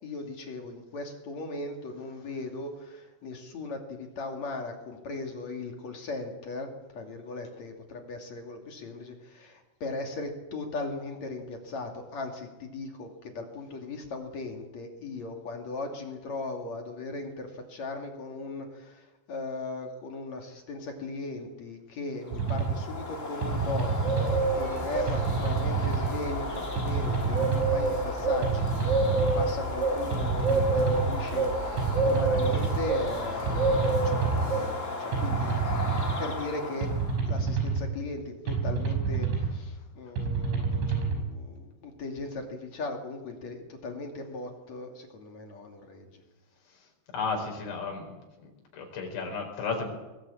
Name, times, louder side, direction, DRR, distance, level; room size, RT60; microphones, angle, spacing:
voice 1, 0.0-35.5 36.2-37.0 37.3-46.2, left 2 dB, 45° left, 3 dB, 3.1 m, -38 dB
sound 1, 22.3-22.8 23.4-24.4 25.1-26.1 26.8-27.8 28.4-29.5 30.1-31.1 31.8-32.8 33.5-34.5 35.1-36.2 36.8-37.8 38.5-39.5 40.2-41.2, right 5 dB, 90° right, 7.8 m, -28 dB
Bird, 22.4-37.1, right 1 dB, 20° left, 2.4 m, -30 dB
sound 2, 24.3-34.9, right 2 dB, 70° right, 7.3 m, -39 dB
voice 2, 47.1-48.2 48.7-49.9, left 4 dB, 75° left, 2 dB, 6.8 m, -34 dB
22.0 x 18.0 x 8.7 m, 1.1 s
omnidirectional pair, 5.4 m